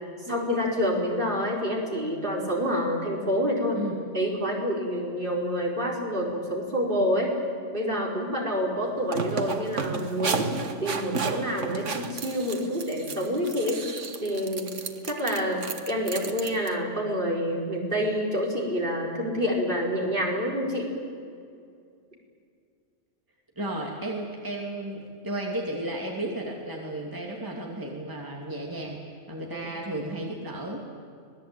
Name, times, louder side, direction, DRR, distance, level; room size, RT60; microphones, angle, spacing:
voice 1, 0.3-3.8 4.1-7.3 7.7-10.5 10.8-13.9 14.2-14.7 15.0-20.9 29.3-29.7, equal, 45° right, -1 dB, 4.8 m, -27 dB
sound 1, 8.8-16.7, right 5 dB, 80° right, 1.7 m, -33 dB
voice 2, 23.6-30.8, right 1 dB, 15° right, -1 dB, 2.8 m, -34 dB
26.0 x 19.5 x 8.9 m, 2.3 s
omnidirectional pair, 1.3 m